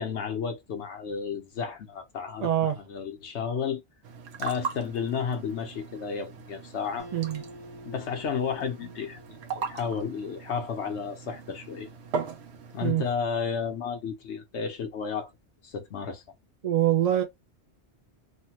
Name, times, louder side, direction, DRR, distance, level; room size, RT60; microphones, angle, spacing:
voice 1, 0.0-3.8 4.4-7.1 7.8-11.9 12.7-15.3 15.6-16.2, left 6 dB, 80° left, 1.1 m, -32 dB
voice 2, 2.4-2.8 7.1-7.4 12.8-13.0 16.6-17.2, right 11 dB, 50° right, 0.5 m, -24 dB
sound 1, 4.0-12.9, right 6 dB, 75° right, 0.9 m, -39 dB
Acoustic guitar, 7.0-10.5, left 1 dB, 20° right, 1.0 m, -49 dB
3.1 x 2.1 x 2.9 m
omnidirectional pair, 1.1 m